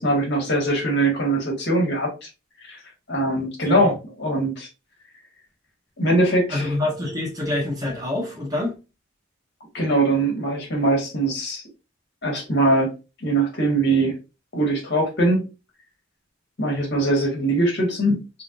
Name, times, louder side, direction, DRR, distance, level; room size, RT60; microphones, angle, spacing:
voice 1, 0.0-2.3 2.6-2.8 3.1-4.7 6.0-6.7 9.7-11.6 12.2-12.9 13.2-14.2 14.5-15.5 16.6-18.2, right 2 dB, 60° left, 1.6 m, -21 dB
voice 2, 6.5-8.8, left 2 dB, 20° right, 1.3 m, -26 dB
3.6 x 3.3 x 2.5 m
head